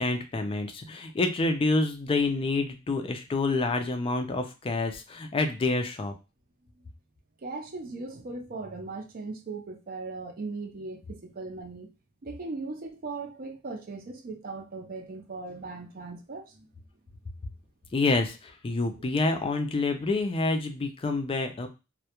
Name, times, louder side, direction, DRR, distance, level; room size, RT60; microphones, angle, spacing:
voice 1, 0.0-6.1 17.9-21.7, left 3 dB, 25° left, 6 dB, 0.3 m, -27 dB
voice 2, 7.4-11.9 12.2-16.7, right 3 dB, 45° right, 4 dB, 0.5 m, -38 dB
2.2 x 2.1 x 2.8 m, 0.28 s
head